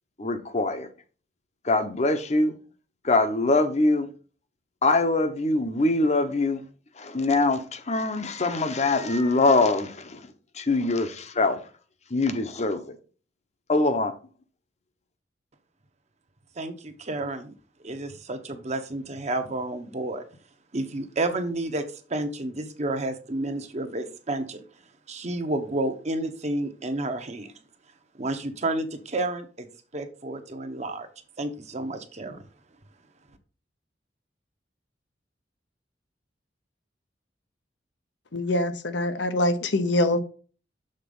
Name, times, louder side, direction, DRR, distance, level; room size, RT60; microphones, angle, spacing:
voice 1, 0.2-0.9 1.6-2.5 3.0-4.1 4.8-6.6 7.0-10.2 10.5-11.6 12.1-13.0 13.7-14.1, left 2 dB, 40° left, 0.8 m, -23 dB
voice 2, 16.6-17.5 17.8-20.2 20.7-24.6 25.1-27.5 28.1-29.7 29.9-31.1 31.4-32.5, right 2 dB, 40° right, 0.9 m, -30 dB
voice 3, 38.3-40.2, left 1 dB, 85° left, 0.9 m, -24 dB
6.6 x 4.1 x 5.4 m
head